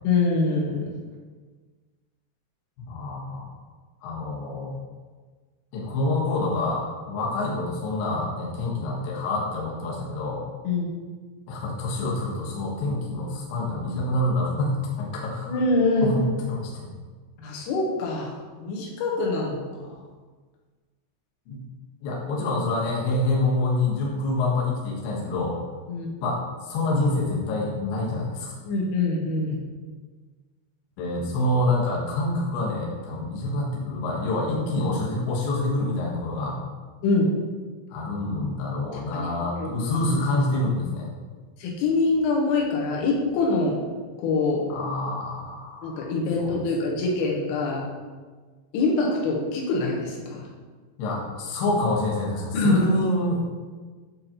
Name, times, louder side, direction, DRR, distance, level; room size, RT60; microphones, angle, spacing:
voice 1, 0.0-0.9 10.7-10.9 15.5-16.1 17.4-19.9 25.9-26.1 28.7-29.6 37.0-37.3 39.1-39.7 41.6-43.8 44.2-44.7 45.8-47.9 48.7-50.5 52.5-52.9, left 3 dB, 90° left, -2 dB, 3.6 m, -24 dB
voice 2, 2.9-3.5 4.0-4.8 5.7-10.4 11.5-15.6 16.0-16.7 21.5-21.6 22.0-25.6 26.2-28.5 31.0-36.6 37.9-41.1 44.7-46.1 46.4-46.5 51.0-53.4, left 2 dB, 70° left, -4 dB, 2.3 m, -27 dB
9.4 x 4.1 x 2.9 m, 1.4 s
omnidirectional pair, 5.6 m